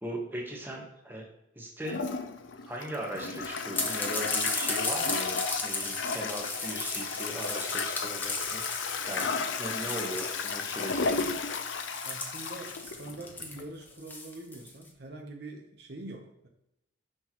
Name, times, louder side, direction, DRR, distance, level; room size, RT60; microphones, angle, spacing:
voice 1, 0.0-1.3 1.5-2.0 2.6-8.6 9.0-9.3 9.6-11.3, right 1 dB, 10° right, 0 dB, 1.2 m, -38 dB
Toilet flush, 1.8-13.6, left 4 dB, 70° left, 0.6 m, -34 dB
Bowed string instrument, 2.5-7.5, left 1 dB, 50° left, 1.4 m, -55 dB
sound 1, 3.7-14.8, left 2 dB, 10° left, 0.8 m, -36 dB
voice 2, 12.0-16.5, right 2 dB, 55° right, 2 dB, 0.8 m, -44 dB
6.5 x 5.9 x 3.0 m, 0.84 s
head